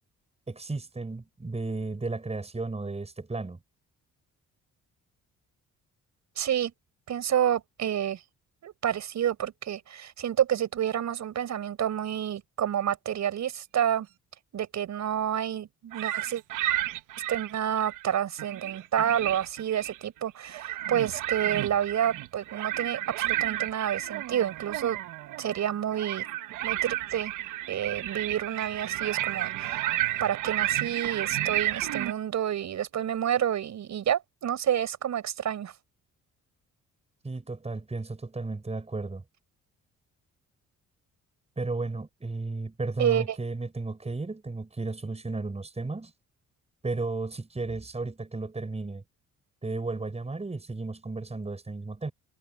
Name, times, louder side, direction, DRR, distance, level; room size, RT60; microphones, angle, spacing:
voice 1, 0.5-3.6 37.2-39.2 41.6-46.1 46.8-49.0 49.6-52.1, right 3 dB, 20° right, 6.6 m, -34 dB
voice 2, 6.4-6.7 7.1-8.2 8.6-14.1 14.5-16.4 17.3-25.0 25.4-26.3 26.6-27.3 27.7-29.9 30.2-35.7 43.0-43.4, right 10 dB, 65° right, 7.4 m, -29 dB
sound 1, 15.9-18.1 18.4-20.0 20.4-32.1, right 14 dB, 90° right, 1.3 m, -32 dB
cardioid pair, 90°, 30 cm